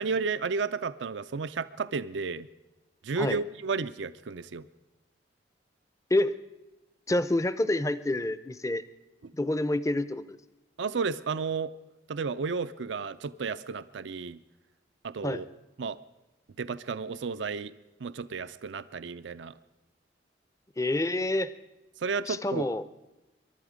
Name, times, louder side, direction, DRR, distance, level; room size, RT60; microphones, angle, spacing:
voice 1, 0.0-2.5 3.0-4.7 10.8-11.7 12.1-14.4 15.0-15.5 15.8-16.0 16.6-17.7 18.0-19.5 22.0-22.7, right 5 dB, 80° right, 13 dB, 0.5 m, -32 dB
voice 2, 7.1-8.8 9.3-10.4 15.2-15.4 20.8-21.5 22.3-22.8, left 1 dB, 15° left, 14 dB, 0.6 m, -27 dB
23.5 x 11.5 x 5.0 m, 1.0 s
head